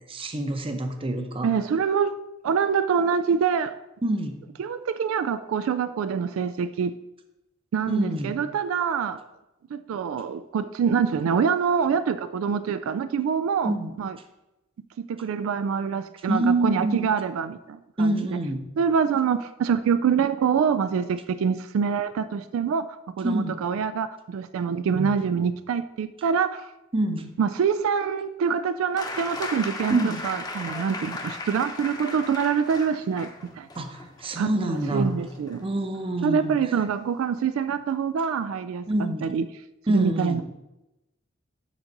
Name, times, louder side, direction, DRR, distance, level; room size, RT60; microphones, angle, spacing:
voice 1, 0.1-1.5 4.0-4.4 7.9-8.3 13.6-14.0 16.3-17.1 18.0-18.6 23.2-23.6 26.9-27.3 29.9-30.2 33.8-35.1 35.6-36.6 38.9-39.3 39.9-40.4, right 1 dB, 25° right, 6 dB, 0.8 m, -26 dB
voice 2, 1.4-2.1 2.4-3.8 4.6-6.9 7.7-9.2 9.7-14.2 15.1-18.2 18.8-26.7 27.4-33.3 33.6-33.7 34.4-34.5 34.9-35.7 36.2-38.9 39.2-39.5 39.9-40.4, right 6 dB, 80° right, 12 dB, 0.3 m, -25 dB
sound 1, 29.0-36.5 37.7-37.8, left 2 dB, 20° left, 0.8 m, -37 dB
7.2 x 3.9 x 6.6 m, 0.97 s
head